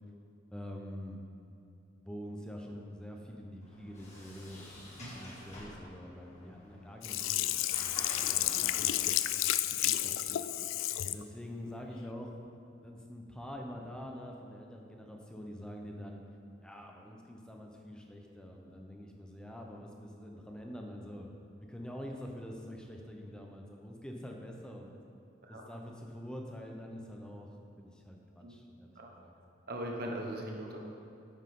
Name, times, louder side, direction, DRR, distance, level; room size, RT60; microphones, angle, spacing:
voice 1, 0.5-1.2 2.0-9.2 9.8-10.4 11.0-12.6 12.8-16.2 16.6-21.3 21.7-25.0 25.5-27.5 27.8-29.3, equal, 5° left, 1 dB, 0.8 m, -46 dB
Sliding door, 3.6-9.2, left 1 dB, 35° left, 1.9 m, -49 dB
Sink (filling or washing), 7.0-11.2 11.7-11.8, left 14 dB, 75° left, 0.3 m, -31 dB
voice 2, 29.7-30.8, right 1 dB, 50° right, 0 dB, 1.2 m, -39 dB
9.3 x 8.1 x 3.7 m, 2.7 s
head